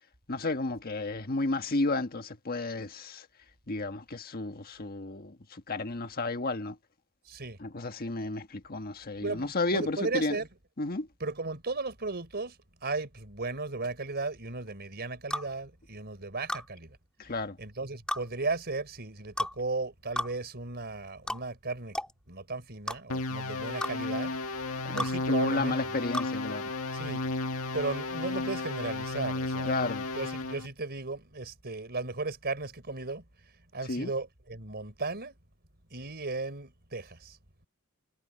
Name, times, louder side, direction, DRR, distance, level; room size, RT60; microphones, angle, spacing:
voice 1, 0.3-3.2 3.7-6.7 7.6-10.4 10.8-11.1 17.2-17.6 24.8-26.7 29.7-30.0 33.9-34.1, left 2 dB, 45° left, 1.5 m, -32 dB
voice 2, 7.3-7.6 9.2-10.5 11.2-12.6 12.8-17.0 17.6-21.9 22.3-24.4 24.9-25.9 26.9-27.2 27.7-29.9 30.1-33.2 33.7-35.4 35.9-37.4, right 3 dB, 50° right, 4.5 m, -35 dB
sound 1, 15.3-15.5 16.5-16.7 18.1-18.2 19.4-19.6 20.2-20.3 21.3-21.4 21.9-22.1 22.9-23.0 23.8-23.9 25.0-25.1 26.1-26.3, left 1 dB, 5° left, 1.9 m, -32 dB
sound 2, 23.1-30.7, left 3 dB, 75° left, 2.0 m, -34 dB
head